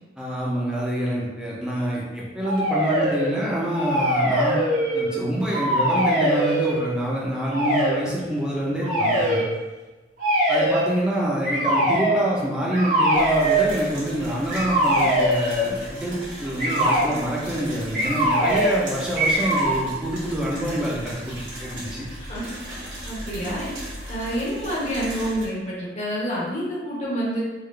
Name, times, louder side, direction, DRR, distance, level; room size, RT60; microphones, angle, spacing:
voice 1, 0.2-4.6 4.9-9.4 10.5-22.0, right 1 dB, 5° right, -5 dB, 0.6 m, -26 dB
sound 1, 2.4-3.3 3.7-5.2 5.5-6.8 7.5-8.0 8.8-9.5 10.2-10.9 11.4-12.2 12.7-13.7 14.5-15.7 16.6-17.1 17.9-18.8 19.2-19.8, right 1 dB, 45° right, 1.0 m, -22 dB
sound 2, 13.1-25.5, equal, 85° right, 1.4 m, -37 dB
voice 2, 23.1-23.7 24.1-27.4, equal, 35° left, -7 dB, 1.0 m, -28 dB
3.8 x 2.5 x 3.3 m, 1.2 s
head